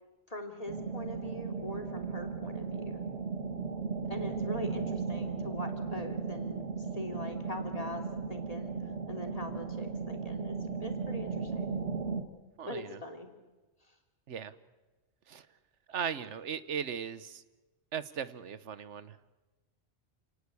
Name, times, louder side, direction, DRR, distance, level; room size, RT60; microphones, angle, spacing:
voice 1, 0.3-3.0 4.1-8.7 9.1-11.7 12.6-13.3, left 1 dB, 30° left, 5 dB, 2.8 m, -42 dB
sound 1, 0.7-12.2, right 5 dB, 65° right, 2.1 m, -36 dB
voice 2, 12.6-13.0 14.3-14.5 15.3-15.4 15.9-17.4 17.9-19.2, right 7 dB, 85° right, 14 dB, 1.3 m, -37 dB
28.0 x 18.5 x 8.4 m, 1.1 s
omnidirectional pair, 1.2 m